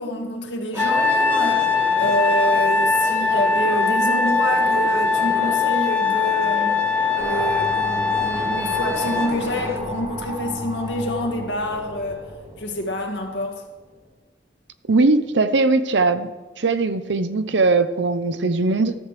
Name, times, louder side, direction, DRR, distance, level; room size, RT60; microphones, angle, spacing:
voice 1, 0.0-6.8 7.2-12.2 12.6-13.6, equal, 70° left, 2 dB, 2.1 m, -27 dB
sound 1, 0.7-9.8, right 1 dB, 15° right, 1.0 m, -34 dB
Trumpet, 0.8-9.3, left 4 dB, 10° left, 1.0 m, -21 dB
sound 2, 7.2-13.6, left 1 dB, 30° right, 2.4 m, -33 dB
voice 2, 14.9-16.3 16.6-18.9, right 3 dB, 70° right, 11 dB, 0.7 m, -19 dB
13.5 x 13.5 x 3.3 m, 1.3 s
head